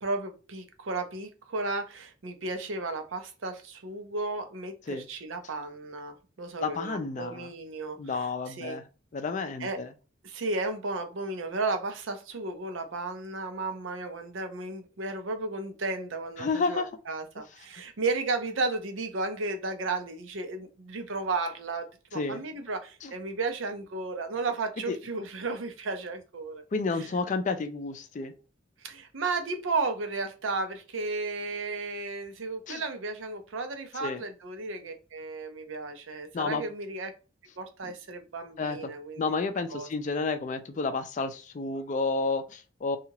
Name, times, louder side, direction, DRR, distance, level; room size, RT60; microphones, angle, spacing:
voice 1, 0.0-8.8 9.6-9.8 10.2-26.6 27.0-27.1 28.8-37.1 37.6-39.2 39.7-39.9, right 3 dB, 80° right, 0.6 m, -34 dB
voice 2, 6.6-7.5 8.0-8.9 9.1-9.9 16.4-16.9 22.1-22.4 23.0-23.1 24.9-25.0 26.7-28.3 32.7-32.8 34.0-34.2 36.3-36.6 37.8-37.9 38.6-38.9 39.2-43.0, left 4 dB, 40° left, 0.4 m, -31 dB
2.8 x 2.4 x 2.8 m
head